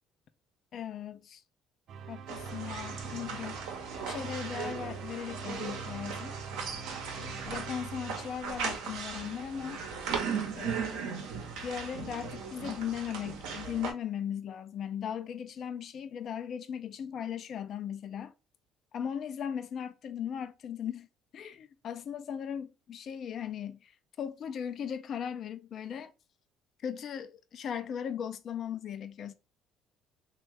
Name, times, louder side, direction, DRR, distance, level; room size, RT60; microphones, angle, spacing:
voice 1, 0.7-1.4 2.1-3.6 4.0-6.4 7.2-9.8 10.5-11.2 11.6-18.3 18.9-21.1 21.3-26.1 26.8-29.3, left 8 dB, 55° left, 0.3 m, -38 dB
sound 1, 1.9-8.9, right 6 dB, 60° right, 0.3 m, -44 dB
sound 2, 2.3-13.9, right 6 dB, 80° right, 0.7 m, -38 dB
3.1 x 2.2 x 3.4 m
supercardioid pair, 75°, 0 cm